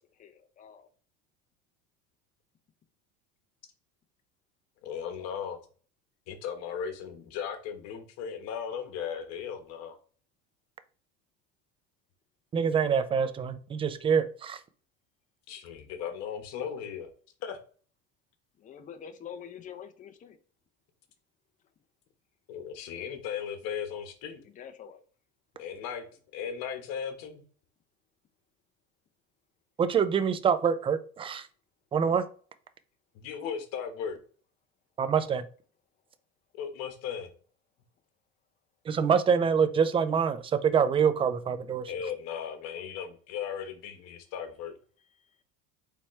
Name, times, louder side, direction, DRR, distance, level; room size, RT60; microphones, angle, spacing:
voice 1, 4.8-5.6 6.3-10.0 15.5-17.1 17.4-17.6 22.5-24.4 25.6-26.0 26.3-27.4 33.1-34.2 36.5-37.3 41.9-44.7, left 7 dB, 55° left, 1.1 m, -37 dB
voice 2, 12.5-14.6 29.8-31.5 31.9-32.2 35.0-35.5 38.9-41.9, right 7 dB, 20° right, 0.4 m, -25 dB
voice 3, 18.6-20.4 24.6-25.0, left 8 dB, 25° left, 0.6 m, -44 dB
4.1 x 3.5 x 3.1 m
supercardioid pair, 125°, 30 cm